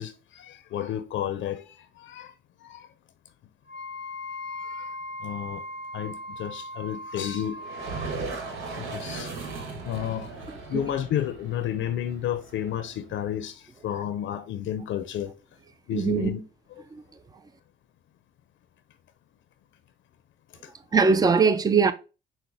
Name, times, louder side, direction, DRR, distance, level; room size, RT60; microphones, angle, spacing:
voice 1, 0.0-2.3 2.6-2.9 4.5-5.6 5.9-7.6 8.0-8.2 8.8-9.3 9.8-10.3 10.6-15.3 15.9-16.4 20.6-20.7, left 10 dB, 75° left, 0.5 m, -32 dB
Wind instrument woodwind instrument, 3.7-8.2, left 1 dB, 50° right, 1.7 m, -38 dB
sound 1, 7.6-13.2, right 4 dB, 90° right, 1.1 m, -37 dB
voice 2, 15.9-16.3 16.9-17.0 20.9-21.9, right 5 dB, 20° right, 0.4 m, -21 dB
6.0 x 2.1 x 3.3 m
cardioid pair, 90°, 20 cm